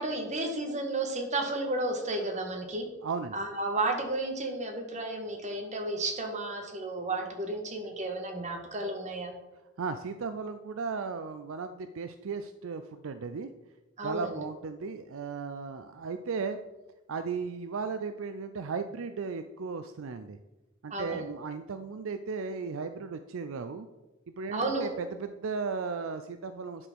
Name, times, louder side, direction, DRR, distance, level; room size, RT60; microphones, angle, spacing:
voice 1, 0.0-2.9 3.3-9.3 14.0-14.4 20.9-21.2 24.5-24.9, right 2 dB, 35° right, 3 dB, 1.7 m, -32 dB
voice 2, 3.0-3.4 9.8-13.5 14.0-16.6 17.1-20.4 20.8-23.9 24.3-26.9, right 5 dB, 65° right, 10 dB, 0.5 m, -36 dB
11.0 x 4.9 x 6.2 m, 1.1 s
head